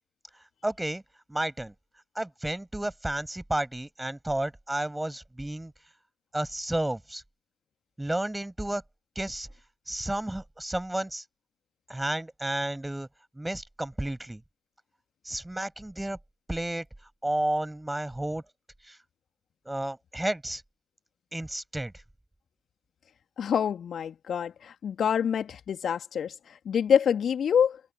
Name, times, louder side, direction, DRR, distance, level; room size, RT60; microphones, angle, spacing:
voice 1, 0.6-1.0 1.3-1.7 2.2-5.7 6.3-7.2 8.0-8.8 9.2-9.5 9.9-11.2 11.9-13.1 13.3-14.4 15.2-16.2 16.5-16.8 17.2-18.4 18.8-19.0 19.7-20.6 21.3-21.9, right 1 dB, 10° right, 5.6 m, -31 dB
voice 2, 23.4-27.8, left 8 dB, 45° left, 2.1 m, -26 dB
figure-of-eight pair, 45°, 0 cm